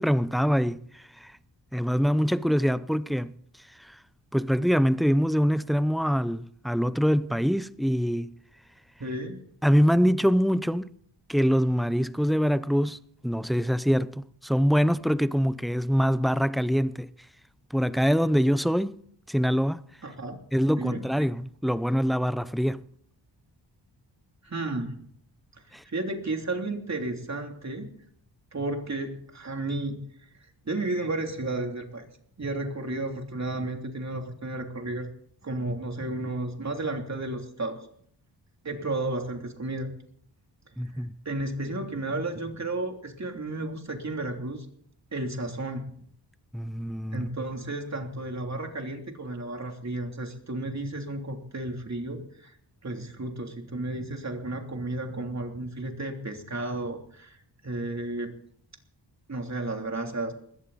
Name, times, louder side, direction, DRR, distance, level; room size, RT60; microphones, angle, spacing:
voice 1, 0.0-1.3 1.7-3.3 3.8-4.0 4.3-8.3 9.6-10.9 11.3-17.1 17.7-19.0 19.3-19.8 20.5-22.8 25.7-25.8 40.8-41.1 46.5-47.3, equal, ahead, 0.6 m, -24 dB
voice 2, 9.0-9.4 20.0-20.4 20.8-21.0 24.4-24.9 25.9-27.9 28.5-30.1 30.6-32.1 32.4-35.1 35.4-37.9 38.6-39.9 40.8-44.7 45.1-45.9 47.1-52.5 52.8-57.4 57.6-58.3 59.3-60.3, right 2 dB, 40° right, 3.2 m, -33 dB
20.5 x 17.0 x 4.2 m
wide cardioid pair, 95°, 44 cm